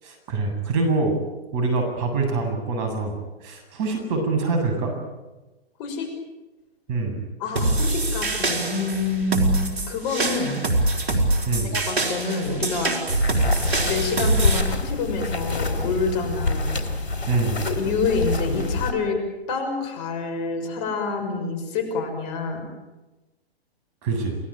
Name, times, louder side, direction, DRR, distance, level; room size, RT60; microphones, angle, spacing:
voice 1, 0.0-1.2 1.5-4.9 6.9-7.2 11.5-11.7 17.3-17.6 24.0-24.4, right 3 dB, 40° right, 5 dB, 7.9 m, -25 dB
voice 2, 5.8-6.1 7.4-10.6 11.6-12.9 13.8-16.7 17.7-19.2 19.5-22.7, left 4 dB, 40° left, 6 dB, 6.3 m, -27 dB
sound 1, 7.6-14.6, right 2 dB, 85° right, 4.8 m, -24 dB
sound 2, 13.1-18.9, left 2 dB, 85° left, 4.2 m, -26 dB
28.5 x 19.5 x 9.1 m, 1.1 s
hypercardioid pair, 125°, 31 cm